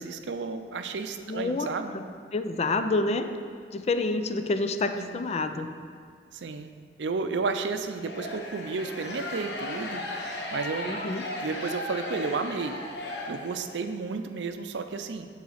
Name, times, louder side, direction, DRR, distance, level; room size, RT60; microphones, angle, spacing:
voice 1, 0.0-2.0 4.9-5.2 6.3-6.7 7.0-11.0 11.4-12.8 13.3-15.3, right 4 dB, 85° right, 8 dB, 0.5 m, -32 dB
voice 2, 1.2-1.7 1.9-2.0 2.3-3.3 3.7-5.7 10.9-11.2, left 3 dB, 35° left, 8 dB, 0.4 m, -28 dB
sound 1, 8.0-13.9, left 1 dB, 75° left, 1.0 m, -36 dB
8.6 x 4.0 x 5.7 m, 2.1 s
head